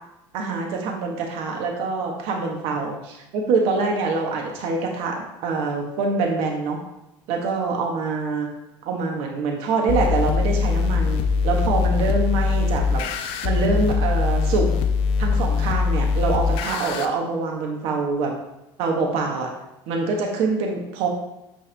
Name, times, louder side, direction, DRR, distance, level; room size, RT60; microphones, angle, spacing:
voice 1, 0.3-3.0 3.3-6.8 7.3-8.5 8.8-13.0 13.4-14.7 15.2-18.3 18.8-19.5 19.9-21.1, right 4 dB, 65° right, 1 dB, 1.3 m, -25 dB
sound 1, 9.9-17.1, left 5 dB, 60° left, 0.6 m, -22 dB
8.7 x 3.5 x 3.4 m, 0.91 s
cardioid pair, 140°, 10 cm